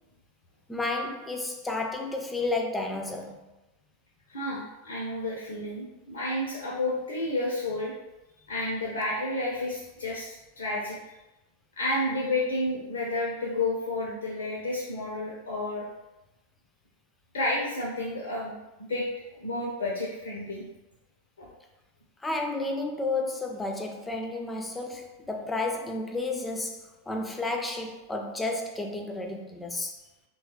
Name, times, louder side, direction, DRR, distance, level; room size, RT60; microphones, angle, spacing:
voice 1, 0.7-3.4 22.2-26.8 27.1-29.9, left 2 dB, 10° left, 0.4 m, -31 dB
voice 2, 4.3-7.9 8.5-11.0 11.8-15.9 17.3-18.5 18.8-19.1 19.4-20.6 21.4-21.5, left 2 dB, 65° left, 0.5 m, -31 dB
3.0 x 2.3 x 2.9 m
figure-of-eight pair, 90°, 0 cm